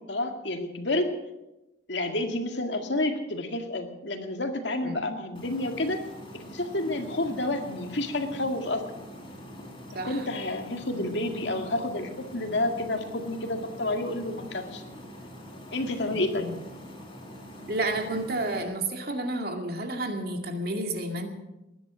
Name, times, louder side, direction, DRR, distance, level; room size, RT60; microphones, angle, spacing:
voice 1, 0.1-1.1 1.9-6.0 6.3-8.8 10.0-14.8 15.7-16.5, left 2 dB, 70° left, 5 dB, 2.1 m, -29 dB
sound 1, 5.3-18.6, equal, 25° left, 3.8 m, -44 dB
voice 2, 16.1-16.5 17.7-21.3, right 2 dB, 55° right, 4 dB, 2.2 m, -31 dB
20.0 x 10.5 x 6.3 m, 0.98 s
head